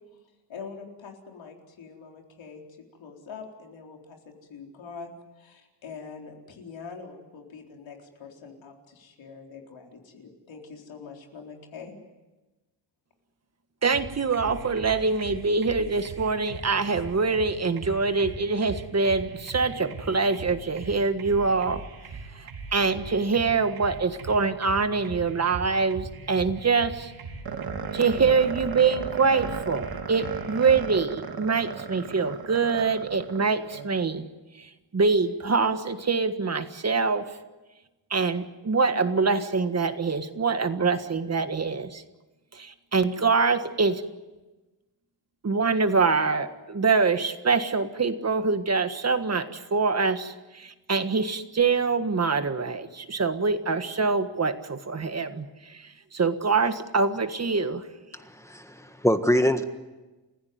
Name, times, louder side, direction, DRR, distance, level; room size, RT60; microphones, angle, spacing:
voice 1, 0.5-2.6 3.0-4.2 4.5-5.1 5.4-11.9, left 5 dB, 80° left, 1 dB, 4.2 m, -44 dB
voice 2, 13.8-21.8 22.3-27.1 27.9-34.2 34.6-37.3 38.1-42.0 42.5-44.0 45.4-57.8, right 4 dB, 35° right, 9 dB, 1.6 m, -25 dB
sound 1, 13.9-30.9, right 4 dB, 90° right, 4.6 m, -40 dB
sound 2, 27.4-33.9, right 6 dB, 55° right, 2.0 m, -36 dB
voice 3, 58.4-59.6, equal, 5° left, 7 dB, 1.6 m, -23 dB
29.5 x 16.0 x 9.5 m, 1.1 s
wide cardioid pair, 125°, 45 cm